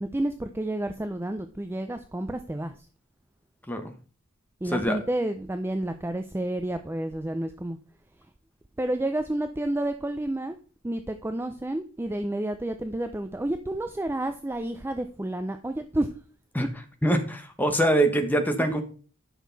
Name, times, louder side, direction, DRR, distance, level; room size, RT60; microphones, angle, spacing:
voice 1, 0.0-2.7 4.6-7.8 8.8-10.6 10.8-16.1 18.6-18.7, right 1 dB, 10° right, 8 dB, 0.4 m, -30 dB
voice 2, 4.7-5.0 16.5-16.7 17.0-18.8, right 1 dB, 10° left, 5 dB, 1.1 m, -24 dB
10.0 x 6.4 x 4.0 m, 0.40 s
head